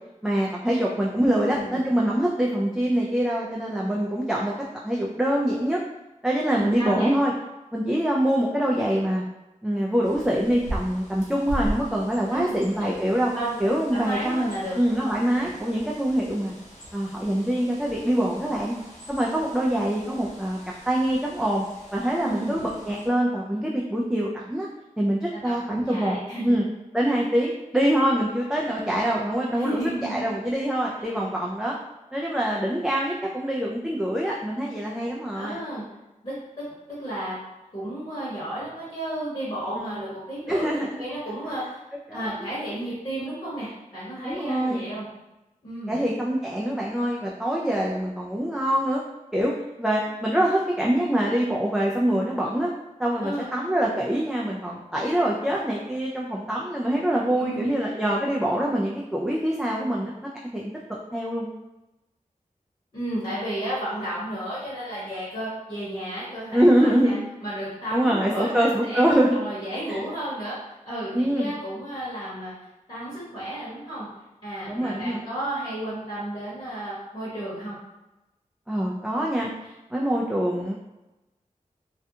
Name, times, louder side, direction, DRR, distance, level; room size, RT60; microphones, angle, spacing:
voice 1, 0.2-4.5 4.8-5.8 6.2-7.3 7.7-9.2 9.6-13.3 13.6-16.5 16.9-18.7 19.1-20.6 20.9-21.7 21.9-24.7 25.0-26.2 26.4-26.6 26.9-31.8 32.1-35.6 39.8-40.0 40.5-41.0 42.1-42.3 44.2-44.8 45.9-49.0 49.3-52.7 53.0-60.7 61.1-61.5 66.5-67.2 67.9-69.4 69.9-70.0 71.1-71.5 74.7-75.2 78.7-80.7, right 1 dB, 5° right, -3 dB, 0.3 m, -24 dB
voice 2, 1.1-1.8 6.5-7.1 12.3-13.0 13.3-13.6 13.9-15.2 22.2-22.6 25.3-26.6 29.5-30.3 31.0-31.1 35.3-35.8 36.2-37.4 37.7-41.8 42.1-45.1 45.6-46.0 53.2-53.5 57.4-57.7 62.9-70.6 70.8-72.5 72.9-74.1 74.4-77.7, right 1 dB, 35° left, -10 dB, 1.0 m, -33 dB
Bird, 10.0-23.1, equal, 60° left, 0.7 m, -40 dB
2.4 x 2.2 x 2.7 m, 1.0 s
wide cardioid pair, 70°, 14 cm